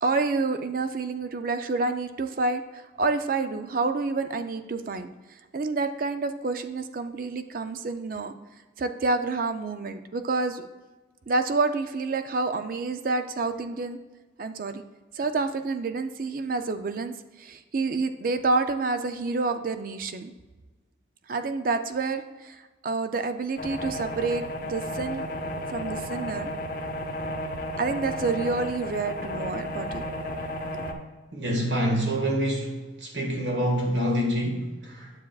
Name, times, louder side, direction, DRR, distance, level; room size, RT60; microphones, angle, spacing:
voice 1, 0.0-5.1 5.5-8.3 8.8-10.7 11.3-14.0 14.4-14.8 15.1-20.3 21.3-25.3 25.7-26.5 27.8-30.0 30.7-30.8, right 3 dB, 45° right, 9 dB, 0.4 m, -28 dB
sound 1, 23.6-30.9, left 1 dB, 45° left, 0.7 m, -33 dB
voice 2, 31.3-35.1, equal, 70° right, 1 dB, 1.7 m, -26 dB
9.8 x 7.1 x 2.3 m, 1.2 s
head